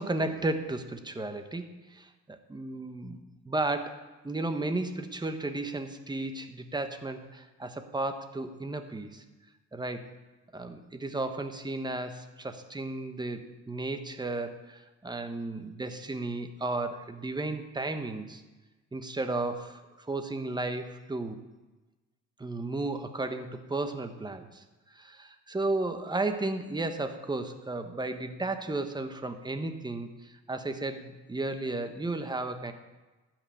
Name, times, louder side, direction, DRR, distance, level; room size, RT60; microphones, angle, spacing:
voice 1, 0.0-3.2 3.4-9.2 9.7-10.1 10.5-18.4 18.9-19.8 20.1-21.4 22.4-24.6 24.9-32.7, right 2 dB, 15° right, 7 dB, 1.2 m, -34 dB
12.5 x 6.1 x 8.6 m, 1.2 s
cardioid pair, 90°, 30 cm